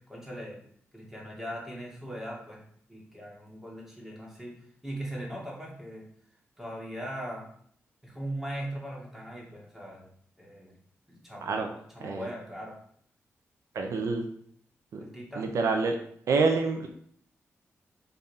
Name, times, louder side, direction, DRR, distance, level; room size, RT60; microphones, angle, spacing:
voice 1, 0.1-0.6 0.9-2.6 2.9-6.1 6.6-7.5 8.0-10.1 10.4-10.7 11.1-11.6 11.9-12.7 15.0-15.5, right 1 dB, 5° right, -3 dB, 2.6 m, -39 dB
voice 2, 13.7-14.2 14.9-15.0 15.4-16.0 16.3-16.9, right 4 dB, 85° right, 4 dB, 0.9 m, -27 dB
5.8 x 4.0 x 5.6 m, 0.62 s
cardioid pair, 95°, 5 cm